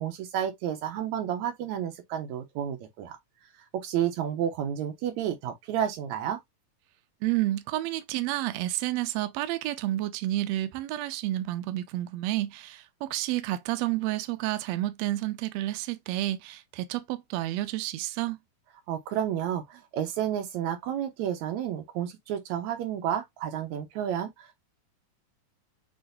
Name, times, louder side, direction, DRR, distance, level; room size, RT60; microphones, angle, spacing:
voice 1, 0.0-3.2 3.8-6.4 18.9-24.6, right 10 dB, 70° right, 2.2 m, -31 dB
voice 2, 7.2-18.4, right 15 dB, 85° right, 1.5 m, -30 dB
6.2 x 3.1 x 2.6 m
omnidirectional pair, 3.6 m